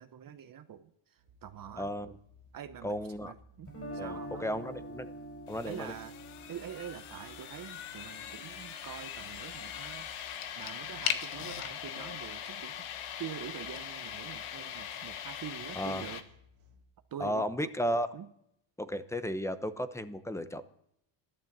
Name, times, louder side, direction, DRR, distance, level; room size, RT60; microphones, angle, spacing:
voice 1, 0.0-1.9 2.5-4.5 5.7-6.1 6.5-10.1 10.6-12.9 13.2-16.2 17.1-17.7 18.1-18.3, right 9 dB, 45° right, 9 dB, 0.9 m, -45 dB
sound 1, 1.2-16.9, left 1 dB, 75° right, 2.4 m, -60 dB
voice 2, 1.8-2.1 2.8-3.3 4.0-5.1 5.5-5.9 15.8-16.0 17.2-18.1 18.8-20.6, equal, 5° left, 12 dB, 0.8 m, -34 dB
Guitar, 3.7-9.7, right 1 dB, 30° left, 4.7 m, -46 dB
sound 2, 5.5-16.2, left 9 dB, 80° left, 1.4 m, -40 dB
14.0 x 12.0 x 7.4 m, 0.76 s
cardioid pair, 110°, 49 cm